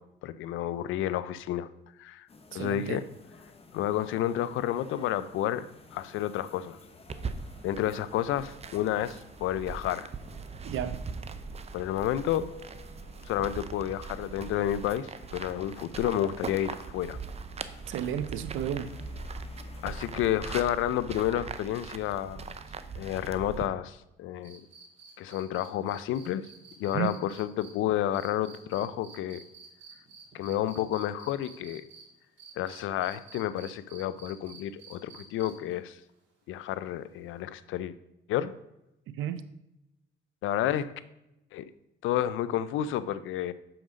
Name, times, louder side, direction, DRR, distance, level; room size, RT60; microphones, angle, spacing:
voice 1, 0.2-1.7 2.0-3.0 3.7-5.7 5.9-6.8 7.6-10.1 11.7-12.5 13.3-17.2 19.8-22.5 23.0-24.6 25.2-26.5 26.8-29.4 30.3-31.8 32.6-36.0 36.5-37.9 38.3-38.5 40.4-40.9 41.5-41.7 42.0-43.5, left 11 dB, 85° left, 15 dB, 0.5 m, -30 dB
sound 1, 2.3-21.4, left 2 dB, 30° left, 1.0 m, -52 dB
voice 2, 2.5-3.0 10.6-11.0 17.9-18.9 26.9-27.2 39.2-39.4, right 10 dB, 85° right, 12 dB, 0.6 m, -32 dB
sound 2, 7.1-23.7, right 5 dB, 30° right, 0.5 m, -41 dB
sound 3, 24.4-32.0 32.4-35.7 37.4-37.5, right 6 dB, 65° right, 2.7 m, -51 dB
6.4 x 5.9 x 5.1 m, 0.89 s
cardioid pair, 90°, 20 cm